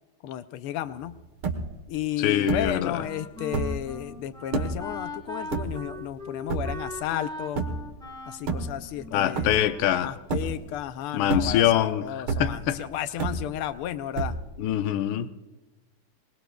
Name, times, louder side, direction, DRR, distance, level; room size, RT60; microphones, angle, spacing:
voice 1, 0.2-1.2 1.9-7.7 8.3-9.7 10.0-14.4, left 11 dB, 90° left, 1.6 m, -33 dB
sound 1, 1.0-1.1 1.2-1.9 2.5-2.9 3.4-3.9 4.5-4.9 5.5-6.1 6.5-7.0 7.5-7.9 8.4-9.1 9.4-9.9 10.3-10.8 11.2-11.8 12.3-12.8 13.2-13.8 14.1-14.7, right 3 dB, 75° right, 2.1 m, -29 dB
voice 2, 2.2-2.9 9.1-10.1 11.1-12.1 12.4-12.8 14.6-15.3, left 11 dB, 70° left, 1.4 m, -24 dB
Wind instrument woodwind instrument, 2.9-10.0, left 1 dB, 5° left, 0.9 m, -40 dB
24.5 x 20.0 x 2.3 m
omnidirectional pair, 2.4 m